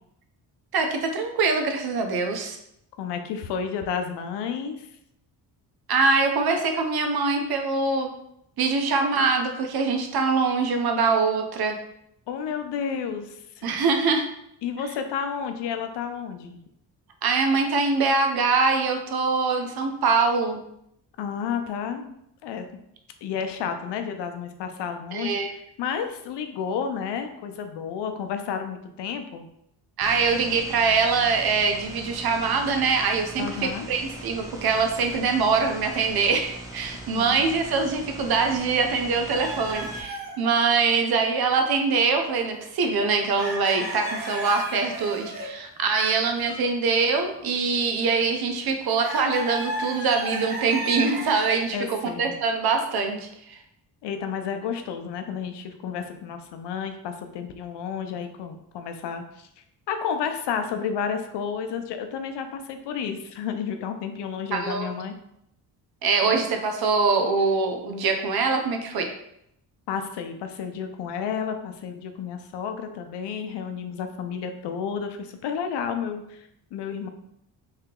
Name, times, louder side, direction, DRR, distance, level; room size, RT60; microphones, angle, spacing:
voice 1, 0.7-2.6 5.9-8.1 8.6-11.8 13.6-14.3 17.2-20.6 25.1-25.6 30.0-53.6 64.5-64.9 66.0-69.1, right 4 dB, 60° right, 5 dB, 0.7 m, -23 dB
voice 2, 3.0-4.9 12.3-13.7 14.6-16.6 21.2-22.1 22.4-22.7 23.2-29.5 33.4-33.9 37.2-37.4 51.7-52.3 54.0-59.5 59.9-65.1 66.2-66.4 69.9-76.4 76.7-77.1, left 7 dB, 80° left, 7 dB, 0.6 m, -31 dB
sound 1, 30.0-40.0, right 1 dB, 10° right, 0.7 m, -41 dB
sound 2, 39.3-40.6 42.0-42.1 42.4-42.5 43.1-45.6 46.3-46.6 46.9-48.3 49.0-51.7, right 1 dB, 25° right, 1.1 m, -34 dB
3.3 x 2.8 x 3.7 m, 0.76 s
cardioid pair, 95°, 41 cm